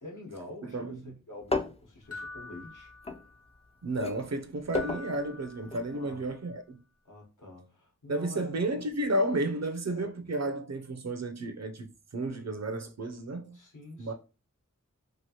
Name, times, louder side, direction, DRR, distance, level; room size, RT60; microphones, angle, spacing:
voice 1, 0.0-2.9 5.9-6.2 7.0-8.6 9.9-10.1 12.3-12.4 13.5-14.1, left 2 dB, 70° left, 1.0 m, -46 dB
sound 1, 1.4-3.7 3.9-5.9 6.2-6.3, left 3 dB, 20° left, 0.3 m, -35 dB
sound 2, 2.1-3.6 4.7-6.2, left 3 dB, 50° left, 0.9 m, -45 dB
voice 2, 3.8-6.8 8.1-11.9 12.1-13.6 14.0-14.1, right 1 dB, 55° right, 0.5 m, -32 dB
3.0 x 2.4 x 2.8 m
wide cardioid pair, 45°, 31 cm